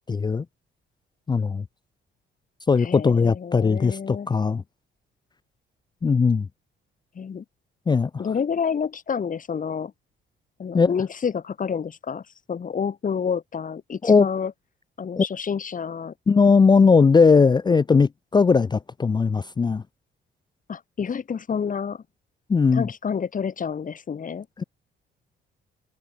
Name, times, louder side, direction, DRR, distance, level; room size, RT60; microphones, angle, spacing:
voice 1, 0.1-0.4 1.3-1.6 2.7-4.6 6.0-6.5 7.9-8.1 10.7-10.9 14.0-14.3 15.2-15.3 16.3-19.8 22.5-22.9 24.6-24.7, left 5 dB, 20° left, 0.4 m, -19 dB
voice 2, 2.8-4.3 7.2-7.4 8.2-9.9 10.6-12.2 12.5-14.5 15.0-16.1 20.7-22.0 22.7-24.5, left 6 dB, 40° left, 2.3 m, -29 dB
cardioid pair, 90°, 20 cm